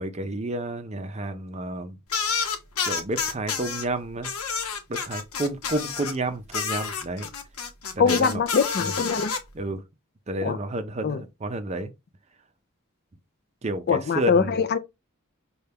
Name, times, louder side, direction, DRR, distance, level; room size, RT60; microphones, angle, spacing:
voice 1, 0.0-2.0 2.9-4.3 4.9-7.3 8.0-8.4 8.8-8.9 9.5-9.8 10.3-11.9 13.6-14.6, right 1 dB, 30° right, 0.5 m, -30 dB
sound 1, 2.1-3.8 4.2-6.2 6.5-9.4, left 6 dB, 85° left, 0.8 m, -29 dB
voice 2, 8.0-9.3 10.4-10.6 11.0-11.2 13.9-14.8, left 6 dB, 50° left, 0.4 m, -23 dB
5.4 x 2.3 x 3.4 m
head